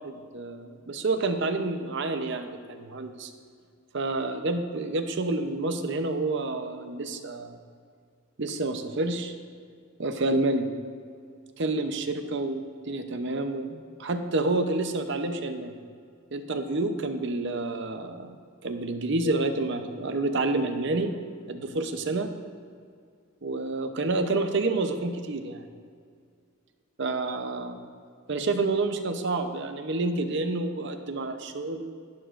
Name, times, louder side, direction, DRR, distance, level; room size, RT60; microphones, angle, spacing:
voice 1, 0.0-3.3 3.9-7.6 8.4-9.3 10.0-10.7 11.6-15.7 16.3-18.4 18.6-21.2 21.5-22.3 23.4-25.6 27.0-27.8 28.3-31.9, right 2 dB, 60° right, 7 dB, 0.7 m, -29 dB
11.5 x 10.0 x 2.5 m, 2.2 s
head